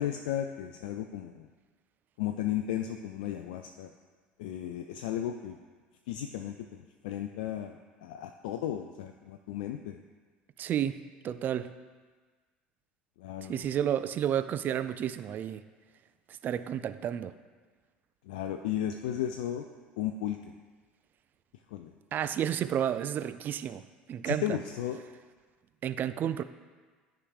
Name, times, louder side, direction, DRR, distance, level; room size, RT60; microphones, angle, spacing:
voice 1, 0.0-1.5 2.2-3.9 4.4-5.6 6.1-10.0 13.2-13.6 18.3-19.7 20.0-20.4 21.7-21.9 24.3-25.0, left 11 dB, 65° left, 5 dB, 0.3 m, -34 dB
voice 2, 10.6-11.0 11.2-11.7 13.5-15.6 16.3-17.3 22.1-24.6 25.8-26.4, right 10 dB, 40° right, 13 dB, 0.3 m, -31 dB
12.5 x 4.8 x 2.4 m, 1.4 s
figure-of-eight pair, 65°, 5 cm